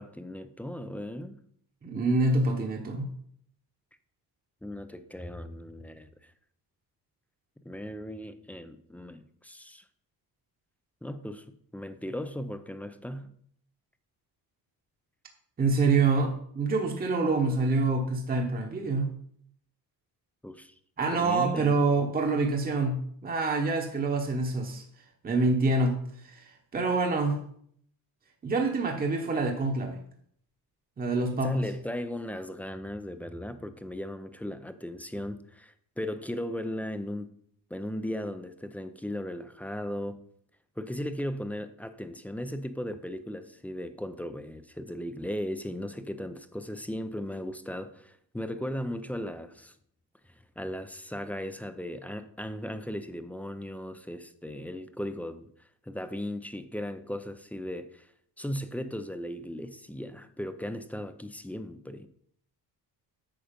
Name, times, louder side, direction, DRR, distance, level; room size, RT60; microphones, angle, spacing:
voice 1, 0.0-1.4 4.6-6.3 7.6-9.8 11.0-13.3 20.4-20.7 21.1-21.8 31.4-37.3 37.7-40.2 40.8-49.7 50.6-55.5 55.9-58.1 58.4-62.1, equal, 5° left, 0.4 m, -37 dB
voice 2, 1.8-3.1 15.6-19.1 21.0-24.8 25.2-26.0 26.2-26.4 26.7-27.4 28.4-30.0 31.0-31.6, right 3 dB, 25° right, 1.0 m, -26 dB
8.9 x 6.4 x 5.2 m
cardioid pair, 155°, 39 cm